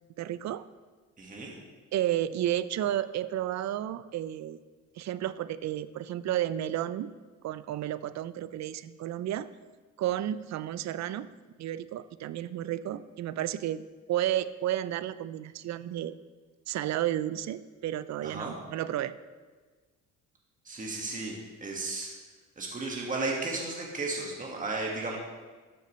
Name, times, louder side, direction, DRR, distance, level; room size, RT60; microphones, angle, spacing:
voice 1, 0.2-0.6 1.9-4.6 5.0-7.1 7.4-9.5 10.0-11.3 11.6-13.8 14.1-16.2 16.7-19.2, right 12 dB, 55° right, 15 dB, 0.5 m, -32 dB
voice 2, 1.2-1.5 18.2-18.5 20.6-21.3 21.6-22.1 22.6-25.2, right 3 dB, 25° right, -2 dB, 1.7 m, -34 dB
12.5 x 6.4 x 3.2 m, 1.4 s
supercardioid pair, 75°, 34 cm